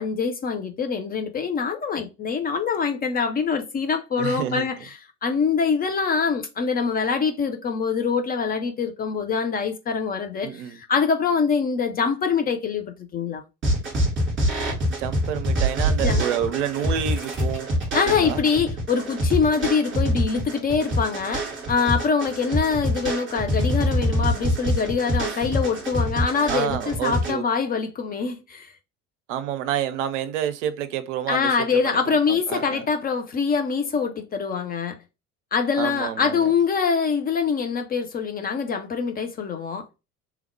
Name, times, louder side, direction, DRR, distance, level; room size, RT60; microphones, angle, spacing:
voice 1, 0.0-13.4 16.0-16.2 17.9-28.7 31.3-35.0 35.5-39.9, left 5 dB, 20° left, 0.5 m, -24 dB
voice 2, 4.2-4.7 10.4-10.8 15.0-18.4 25.3-25.5 26.5-27.4 29.3-31.5 31.8-32.0 32.3-32.8 35.8-36.5, right 10 dB, 50° right, 0.6 m, -29 dB
sound 1, 13.6-27.3, equal, 25° right, 2.0 m, -25 dB
3.4 x 3.3 x 3.2 m
figure-of-eight pair, 70°, 45 cm